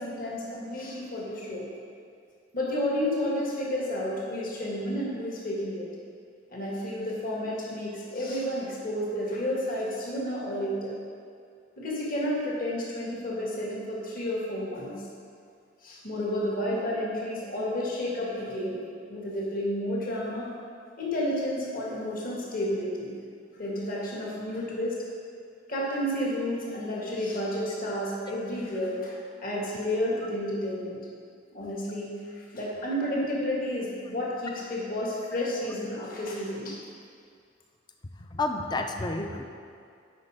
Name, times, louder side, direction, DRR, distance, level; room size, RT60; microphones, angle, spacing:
voice 1, 0.0-1.6 2.5-5.9 6.5-10.9 11.8-15.0 15.8-18.8 19.1-20.5 21.0-23.1 23.5-25.0 25.7-31.0 31.5-36.8, left 1 dB, 50° left, -4 dB, 1.6 m, -31 dB
voice 2, 38.3-39.4, left 3 dB, 25° left, 4 dB, 0.5 m, -29 dB
8.2 x 5.3 x 5.0 m, 2.3 s
head